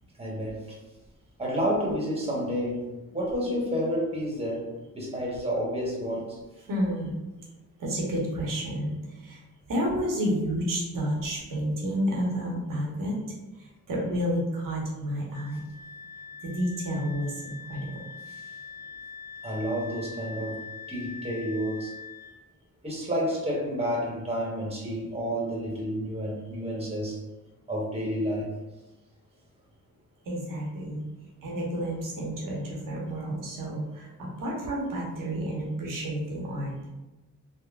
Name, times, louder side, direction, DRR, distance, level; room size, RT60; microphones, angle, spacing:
voice 1, 0.2-0.8 1.4-4.7 4.9-6.4 19.4-20.6 20.9-21.9 22.8-27.2 27.7-28.5, equal, 20° right, -3 dB, 1.0 m, -30 dB
voice 2, 6.7-7.1 7.8-9.4 9.7-13.2 13.6-15.7 16.4-17.9 30.2-31.0 31.4-36.9, equal, 75° right, -2 dB, 1.0 m, -30 dB
Wind instrument woodwind instrument, 15.3-22.4, left 5 dB, 40° left, 0.7 m, -43 dB
3.5 x 2.1 x 2.3 m, 1.1 s
cardioid pair, 80°, 33 cm